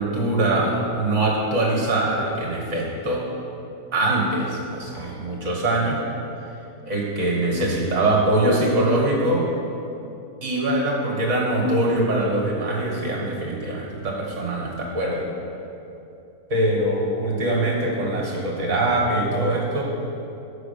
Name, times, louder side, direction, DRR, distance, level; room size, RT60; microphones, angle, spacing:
voice 1, 0.0-3.2 3.9-6.0 6.8-9.5 10.4-15.3 16.5-19.8, right 1 dB, 45° right, -2 dB, 1.7 m, -23 dB
6.1 x 6.1 x 6.8 m, 2.8 s
omnidirectional pair, 1.9 m